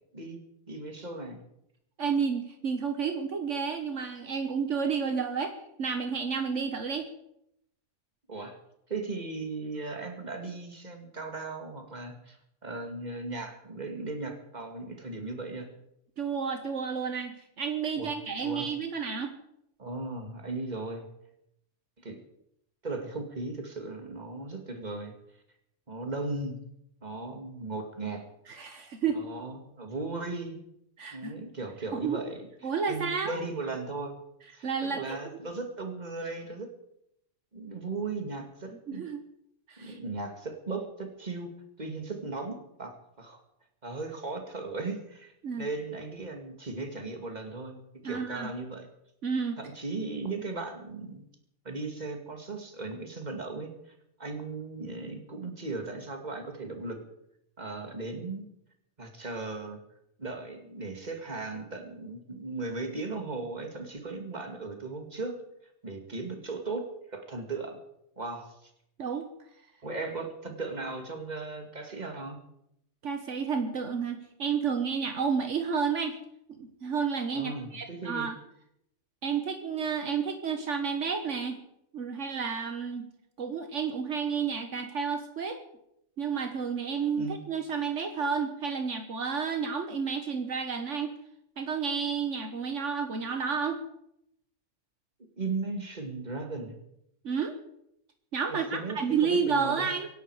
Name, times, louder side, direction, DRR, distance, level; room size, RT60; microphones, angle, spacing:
voice 1, 0.7-1.4 8.3-8.6 8.9-12.4 12.6-15.7 18.0-18.1 18.4-18.7 19.8-21.0 22.0-22.2 22.8-25.1 25.9-26.6 27.0-28.2 29.1-30.6 31.1-34.2 34.5-36.7 37.5-39.0 39.8-41.5 41.8-43.4 43.8-47.8 48.0-48.9 49.6-51.2 51.6-53.7 54.2-57.0 57.6-58.4 59.0-59.8 60.2-65.4 65.8-67.8 68.2-68.7 69.8-72.4 77.3-78.3 87.2-87.4 95.4-96.8 98.5-99.9, right 3 dB, 35° right, 4 dB, 2.4 m, -37 dB
voice 2, 2.0-7.1 16.2-19.4 28.5-29.2 31.0-31.3 31.9-32.2 32.6-33.4 34.6-35.2 38.7-39.2 39.7-40.0 45.4-45.7 48.0-48.5 49.2-49.6 69.0-69.3 73.0-76.1 76.5-78.3 79.2-81.6 81.9-83.1 83.4-85.6 86.2-91.1 91.6-93.8 97.2-97.6 98.3-100.1, right 6 dB, 70° right, 6 dB, 1.6 m, -31 dB
24.5 x 11.0 x 4.9 m, 0.78 s
omnidirectional pair, 1.3 m